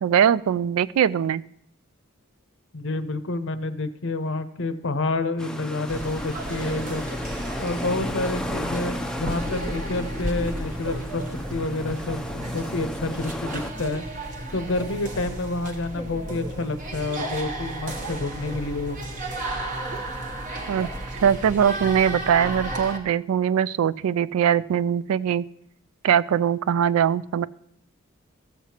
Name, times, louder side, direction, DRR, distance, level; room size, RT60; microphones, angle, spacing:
voice 1, 0.0-1.4 20.7-20.9 21.2-25.4 26.0-27.5, right 8 dB, 80° right, 18 dB, 0.3 m, -21 dB
voice 2, 2.7-7.1 7.6-14.0 14.5-19.0, left 2 dB, 60° left, 11 dB, 0.7 m, -29 dB
sound 1, 5.4-13.7, left 1 dB, 5° left, 0.5 m, -34 dB
sound 2, 5.9-23.0, right 1 dB, 35° right, 1.0 m, -33 dB
sound 3, 7.1-7.2 8.1-8.2 9.6-9.8 10.8-11.0 11.8-12.0 13.0-13.3 13.8-14.1 14.8-14.9 15.5-15.7 16.4-16.5 17.2-17.3 18.0-18.1 19.0-19.1 19.9-20.0 20.8-20.9 21.4-21.5, right 2 dB, 60° right, 0.9 m, -39 dB
15.0 x 7.4 x 2.9 m, 0.68 s
head